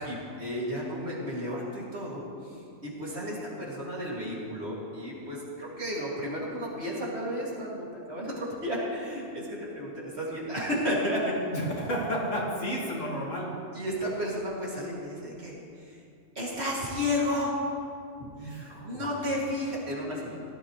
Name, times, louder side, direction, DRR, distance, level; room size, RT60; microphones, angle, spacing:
voice 1, 0.0-2.2 2.8-11.3 13.7-15.6 15.9-16.0 16.3-17.6 18.2-20.4, left 1 dB, 55° right, -6 dB, 3.0 m, -32 dB
voice 2, 11.5-13.5 18.3-19.2, equal, 80° left, -4 dB, 2.6 m, -32 dB
17.5 x 12.0 x 3.3 m, 2.4 s
omnidirectional pair, 1.3 m